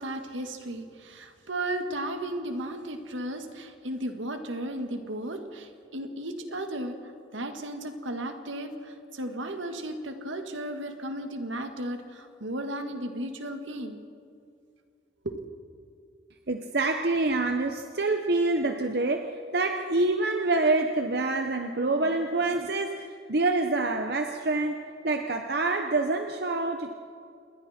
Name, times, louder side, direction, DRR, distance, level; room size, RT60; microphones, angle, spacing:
voice 1, 0.0-14.0 15.2-15.4, right 1 dB, 80° right, 6 dB, 1.9 m, -35 dB
voice 2, 16.5-24.8 25.0-26.9, right 2 dB, 55° right, 5 dB, 0.9 m, -26 dB
27.5 x 21.5 x 4.4 m, 2.4 s
head